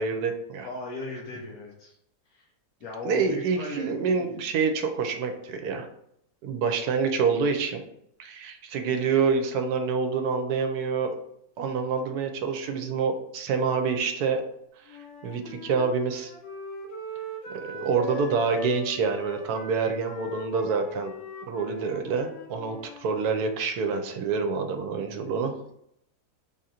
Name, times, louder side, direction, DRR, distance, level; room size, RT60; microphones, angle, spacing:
voice 1, 0.0-0.7 3.0-5.9 6.4-7.8 8.2-11.2 11.6-14.5 14.9-16.3 17.5-21.1 21.5-25.5, right 5 dB, 75° right, 6 dB, 1.1 m, -27 dB
voice 2, 0.6-2.0 2.3-2.5 2.8-4.3 17.6-18.3, left 2 dB, 70° left, -1 dB, 1.2 m, -38 dB
Wind instrument woodwind instrument, 14.9-23.0, left 1 dB, 85° left, 1.4 m, -40 dB
3.8 x 2.5 x 4.2 m, 0.74 s
omnidirectional pair, 1.7 m